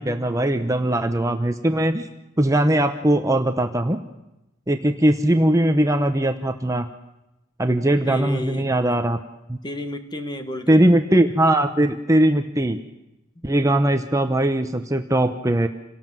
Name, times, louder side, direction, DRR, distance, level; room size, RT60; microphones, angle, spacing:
voice 1, 0.0-2.1 2.4-4.0 4.7-6.9 7.6-9.2 9.5-9.6 10.7-12.8 13.4-15.7, right 1 dB, 15° right, 7 dB, 0.8 m, -20 dB
voice 2, 8.1-8.7 9.6-11.0 13.3-13.4, left 1 dB, 20° left, 7 dB, 1.7 m, -32 dB
27.0 x 18.0 x 7.6 m, 0.96 s
head